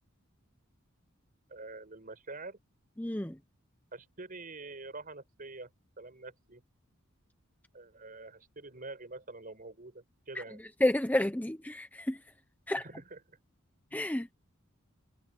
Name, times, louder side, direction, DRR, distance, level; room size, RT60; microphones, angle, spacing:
voice 1, 1.5-2.6 3.9-5.7 6.0-6.6 7.7-10.6 12.8-13.4, right 3 dB, 40° right, 5.3 m, -46 dB
voice 2, 3.0-3.3 10.8-12.2 12.7-12.8 13.9-14.3, left 1 dB, 10° left, 0.8 m, -30 dB
head